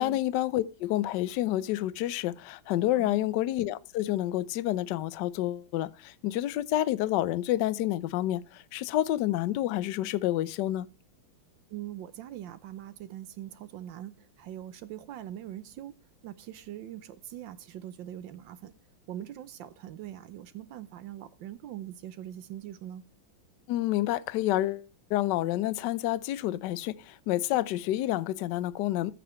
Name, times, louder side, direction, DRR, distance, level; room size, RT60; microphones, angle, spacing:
voice 1, 0.0-10.9 23.7-29.1, left 14 dB, 70° left, 1.0 m, -29 dB
voice 2, 3.0-3.3 11.7-15.9 16.2-18.7 19.1-23.0, right 12 dB, 70° right, 1.3 m, -42 dB
14.0 x 6.8 x 3.1 m
omnidirectional pair, 2.3 m